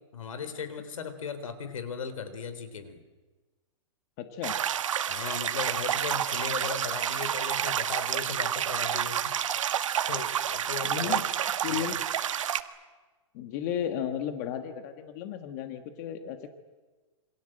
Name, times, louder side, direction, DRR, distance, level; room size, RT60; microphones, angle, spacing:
voice 1, 0.1-3.0 5.1-9.4 10.0-11.2 11.7-12.0, left 6 dB, 90° left, 11 dB, 3.9 m, -37 dB
voice 2, 4.2-4.6 10.8-11.3 11.6-12.0 13.3-16.5, left 9 dB, 30° left, 8 dB, 1.6 m, -34 dB
sound 1, 4.4-12.6, right 9 dB, 75° right, 1.5 m, -29 dB
27.5 x 24.5 x 7.8 m, 1.3 s
hypercardioid pair, 170°, 17 cm